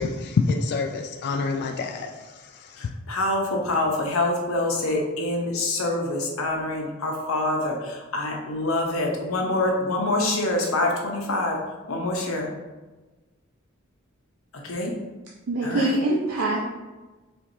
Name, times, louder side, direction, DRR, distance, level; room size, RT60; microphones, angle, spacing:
voice 1, 0.0-2.9, left 4 dB, 50° left, 4 dB, 0.3 m, -27 dB
voice 2, 2.8-11.6 11.9-12.5 14.6-14.9 15.6-15.9, left 2 dB, 80° left, 0 dB, 0.8 m, -26 dB
voice 3, 15.5-16.7, right 1 dB, 90° right, -2 dB, 0.5 m, -24 dB
4.5 x 3.5 x 2.7 m, 1.2 s
head